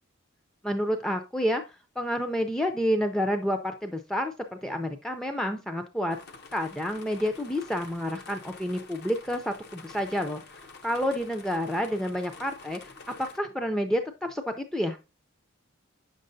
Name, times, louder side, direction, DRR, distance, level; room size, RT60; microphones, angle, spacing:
voice 1, 0.6-6.2 6.5-12.8 13.1-15.0, equal, 5° left, 5 dB, 0.4 m, -29 dB
sound 1, 6.1-13.4, left 4 dB, 50° left, 0.7 m, -48 dB
8.3 x 6.5 x 2.6 m, 0.28 s
head